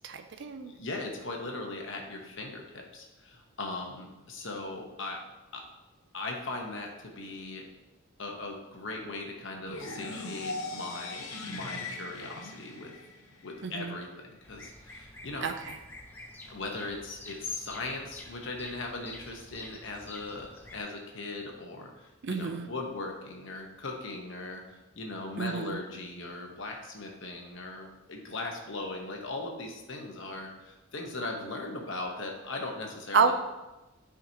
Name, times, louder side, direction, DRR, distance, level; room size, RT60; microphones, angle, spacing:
voice 1, 0.0-0.7 13.6-14.0 15.4-15.5 22.2-22.7 25.4-25.8 33.1-33.3, right 5 dB, 55° right, 7 dB, 0.4 m, -28 dB
voice 2, 0.7-5.2 5.5-5.6 6.1-7.6 8.2-12.9 13.4-15.5 16.5-33.3, left 2 dB, 60° left, 1 dB, 1.1 m, -39 dB
sound 1, 9.7-13.6, left 2 dB, 85° left, 0.9 m, -39 dB
Bird vocalization bird call bird song, 14.4-20.8, left 1 dB, 10° left, 0.6 m, -49 dB
9.5 x 5.0 x 2.9 m, 1.0 s
head